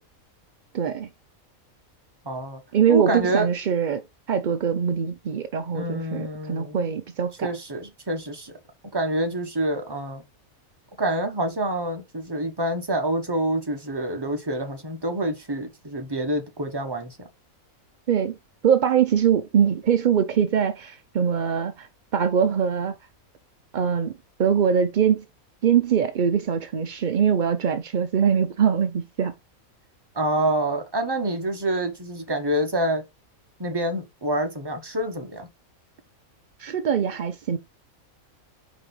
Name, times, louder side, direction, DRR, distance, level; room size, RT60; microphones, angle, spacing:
voice 1, 0.7-1.1 2.7-4.0 4.3-7.5 18.1-18.4 18.6-21.9 22.1-23.0 23.7-24.1 24.4-25.2 25.6-29.3 36.6-37.6, right 7 dB, 70° right, 0.4 m, -22 dB
voice 2, 2.2-2.6 2.9-3.5 5.7-6.9 7.4-8.5 8.9-10.2 11.0-17.2 30.1-33.0 33.6-35.5, right 1 dB, 20° right, 1.1 m, -27 dB
5.0 x 4.2 x 5.3 m
omnidirectional pair, 1.5 m